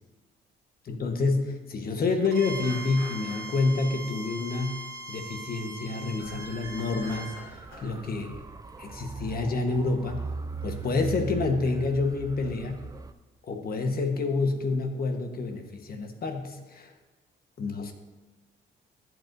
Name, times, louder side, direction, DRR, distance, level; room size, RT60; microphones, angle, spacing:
voice 1, 0.8-4.8 5.1-7.3 7.8-8.4 8.8-10.2 10.6-12.8 13.4-16.9 17.6-17.9, left 3 dB, 50° left, 5 dB, 1.2 m, -28 dB
Bowed string instrument, 2.2-7.4, right 1 dB, 65° right, 1.5 m, -40 dB
sound 1, 2.6-3.6 4.7-4.8 5.7-5.9 6.2-6.4 6.8-8.0, left 2 dB, 75° left, 2.3 m, -48 dB
sound 2, 6.2-13.1, right 5 dB, 20° right, 0.5 m, -40 dB
14.0 x 8.0 x 2.6 m, 1.3 s
cardioid pair, 90°, 20 cm